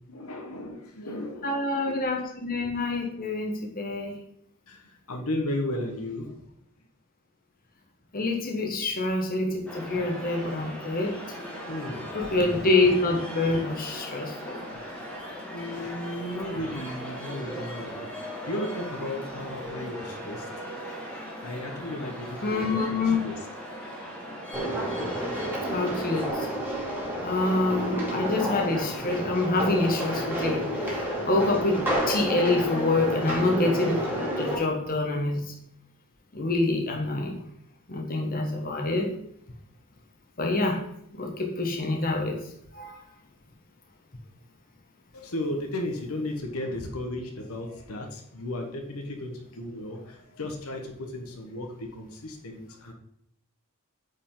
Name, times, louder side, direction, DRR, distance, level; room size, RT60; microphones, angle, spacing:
voice 1, 0.1-1.5 4.7-6.4 11.6-12.1 15.5-20.5 21.4-23.4 45.1-52.9, left 1 dB, 75° left, 3 dB, 1.2 m, -35 dB
voice 2, 1.4-4.2 8.1-11.1 12.1-14.6 22.4-23.2 25.7-26.5 27.2-31.0 31.2-35.5 36.3-37.4 37.9-39.1 40.4-40.8 41.2-42.4 42.7-43.0, left 2 dB, 40° left, 2 dB, 1.3 m, -26 dB
sound 1, 9.7-26.3, equal, 5° left, 1.8 m, -39 dB
sound 2, 24.5-34.6, equal, 10° right, 2.4 m, -30 dB
8.8 x 5.0 x 3.9 m, 0.70 s
head